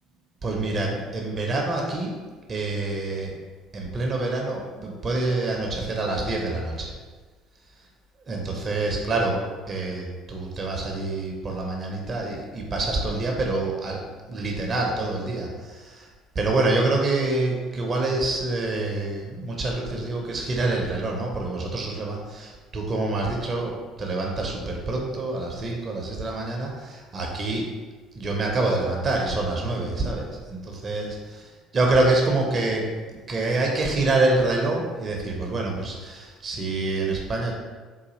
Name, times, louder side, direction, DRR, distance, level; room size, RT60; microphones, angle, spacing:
voice 1, 0.4-2.2 2.5-3.3 3.7-6.9 8.3-16.1 16.3-27.7 28.2-31.4 31.7-32.9 33.3-37.5, right 2 dB, 35° right, 0 dB, 0.6 m, -26 dB
4.0 x 2.3 x 3.0 m, 1.4 s
figure-of-eight pair, 55°, 0 cm